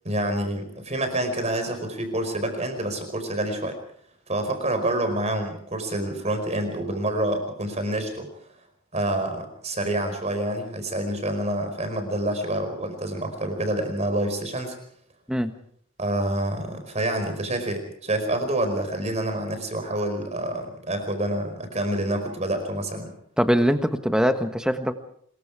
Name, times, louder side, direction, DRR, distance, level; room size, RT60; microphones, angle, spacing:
voice 1, 0.0-3.8 4.3-8.3 8.9-14.8 16.0-23.1, right 1 dB, 30° right, 7 dB, 4.9 m, -27 dB
voice 2, 23.4-24.9, equal, 5° right, 8 dB, 1.4 m, -22 dB
25.5 x 22.0 x 4.9 m, 0.63 s
head